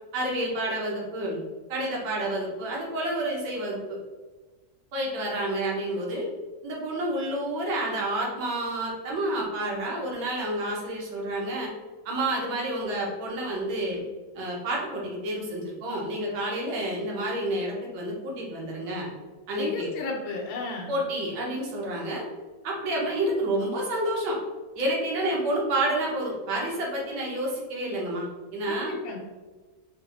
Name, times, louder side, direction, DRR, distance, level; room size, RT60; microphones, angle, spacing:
voice 1, 0.1-1.4 1.7-3.8 4.9-6.3 6.6-11.7 12.0-14.0 14.3-19.1 19.5-19.9 20.9-22.2 22.6-24.4 24.8-28.9, right 1 dB, 85° right, -3 dB, 1.7 m, -29 dB
voice 2, 19.6-21.0 28.7-29.2, left 3 dB, 85° left, -2 dB, 1.4 m, -33 dB
4.4 x 2.5 x 2.4 m, 1.3 s
omnidirectional pair, 2.1 m